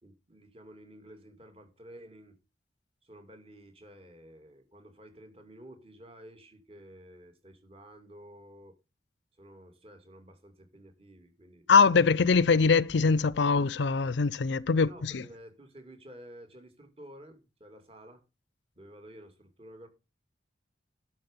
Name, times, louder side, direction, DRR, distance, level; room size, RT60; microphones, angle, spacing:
voice 1, 0.0-2.4 3.0-8.8 9.4-11.7 14.7-18.2 18.8-19.9, equal, 30° right, 2.7 m, -51 dB
voice 2, 11.7-15.2, left 5 dB, 70° left, 0.5 m, -23 dB
11.5 x 6.4 x 5.4 m
head